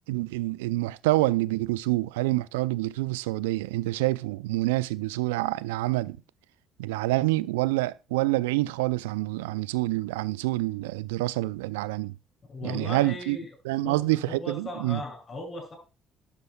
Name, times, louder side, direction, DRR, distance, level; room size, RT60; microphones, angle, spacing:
voice 1, 0.1-6.2 6.8-12.1 12.6-13.4 13.7-15.0, right 19 dB, 80° right, 0.4 m, -27 dB
voice 2, 12.4-13.5 13.8-15.8, left 2 dB, 40° left, 7.3 m, -37 dB
12.0 x 11.5 x 2.3 m
hypercardioid pair, 50°, 0 cm